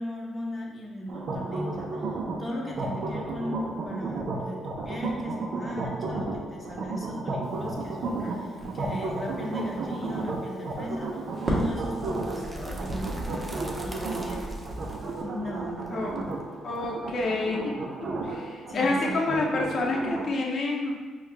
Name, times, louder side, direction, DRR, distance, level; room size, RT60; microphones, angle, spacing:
voice 1, 0.0-2.0 2.4-11.2 11.5-13.5 13.8-14.5 15.2-16.1 18.3-18.4 18.7-19.2, left 1 dB, 25° left, -2 dB, 0.8 m, -38 dB
sound 1, 1.1-20.3, right 3 dB, 60° right, 0.6 m, -33 dB
Crackle, 7.4-15.2, right 1 dB, 35° right, 1.1 m, -38 dB
sound 2, 12.0-17.8, right 1 dB, 15° right, 0.6 m, -42 dB
voice 2, 16.6-17.6 18.0-20.9, left 2 dB, 55° left, -1 dB, 0.7 m, -28 dB
4.5 x 2.3 x 3.4 m, 1.3 s
cardioid pair, 90°, 0 cm